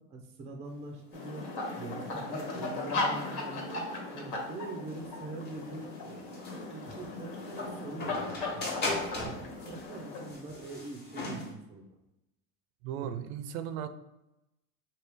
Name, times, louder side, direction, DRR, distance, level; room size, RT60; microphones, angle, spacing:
voice 1, 0.1-1.5 1.8-3.8 4.1-6.2 6.7-8.2 8.5-9.3 9.7-11.9 12.9-13.2, right 3 dB, 15° right, 3 dB, 0.4 m, -43 dB
sound 1, 0.7-11.5, left 2 dB, 25° left, 1.1 m, -40 dB
sound 2, 1.1-10.3, left 2 dB, 65° left, 1.4 m, -37 dB
voice 2, 12.8-13.9, right 9 dB, 80° right, 11 dB, 0.5 m, -37 dB
4.5 x 2.9 x 3.4 m, 0.90 s
supercardioid pair, 145°, 40 cm